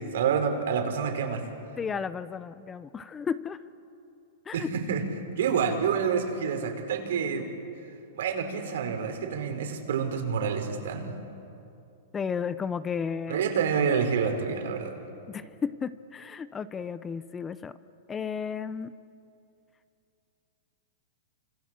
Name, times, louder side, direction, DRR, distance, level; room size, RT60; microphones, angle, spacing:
voice 1, 0.0-1.5 4.5-5.0 5.3-7.5 8.1-11.1 13.3-15.0, right 6 dB, 75° right, 5 dB, 4.5 m, -28 dB
voice 2, 1.8-3.6 4.5-4.7 12.1-13.5 15.3-17.7 18.1-18.9, left 6 dB, 15° left, 15 dB, 0.7 m, -33 dB
28.0 x 26.5 x 7.5 m, 2.7 s
hypercardioid pair, 140°, 0 cm